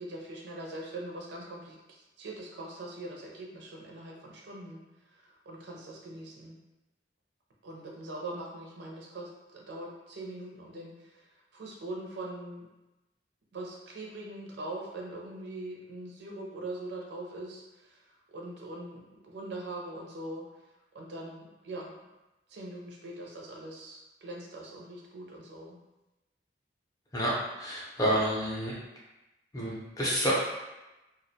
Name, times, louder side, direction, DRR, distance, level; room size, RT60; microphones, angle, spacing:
voice 1, 0.0-4.8 5.1-6.6 7.6-11.3 11.5-12.7 13.5-20.4 20.9-21.9 22.5-25.8, right 1 dB, 65° right, -1 dB, 0.5 m, -42 dB
voice 2, 27.6-28.7 29.5-30.3, equal, 20° left, -6 dB, 0.5 m, -29 dB
2.3 x 2.1 x 2.6 m, 1.0 s
head